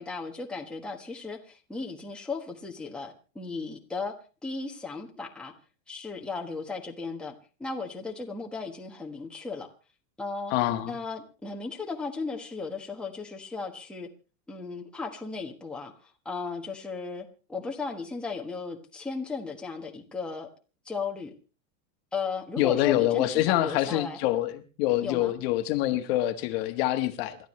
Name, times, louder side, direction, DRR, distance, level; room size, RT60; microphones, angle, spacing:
voice 1, 0.0-4.1 4.4-5.5 5.9-7.3 7.6-9.7 10.2-10.5 10.9-14.1 14.5-20.5 20.8-21.3 22.1-24.2 25.0-25.3, left 4 dB, ahead, 1.4 m, -36 dB
voice 2, 10.5-11.0 22.6-27.4, left 14 dB, 45° left, 1.5 m, -26 dB
28.0 x 13.0 x 3.2 m
supercardioid pair, 160°, 42 cm